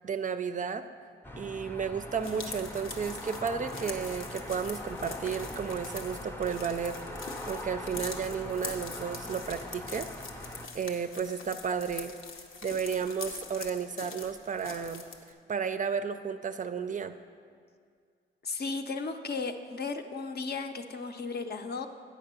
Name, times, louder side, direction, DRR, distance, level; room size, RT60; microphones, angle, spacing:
voice 1, 0.0-0.8 1.4-7.0 7.3-10.1 10.7-12.1 12.6-15.1 15.5-17.2, right 6 dB, 40° right, 10 dB, 0.4 m, -33 dB
sound 1, 1.2-10.7, left 1 dB, 10° left, 0.5 m, -42 dB
sound 2, 2.1-15.3, left 4 dB, 85° left, 0.8 m, -44 dB
voice 2, 18.4-21.9, left 4 dB, 50° left, 6 dB, 0.6 m, -35 dB
8.6 x 5.1 x 6.7 m, 2.1 s
cardioid pair, 100°, 21 cm